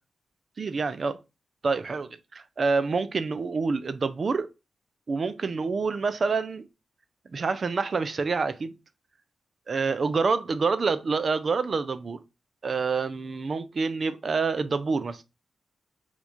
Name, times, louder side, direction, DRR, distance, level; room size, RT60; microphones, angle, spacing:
voice 1, 0.6-1.2 1.6-4.5 5.1-6.7 7.3-8.7 9.7-12.2 12.6-15.2, right 4 dB, 55° right, 0.4 m, -27 dB
2.9 x 2.4 x 4.2 m
cardioid pair, 55°, 0 cm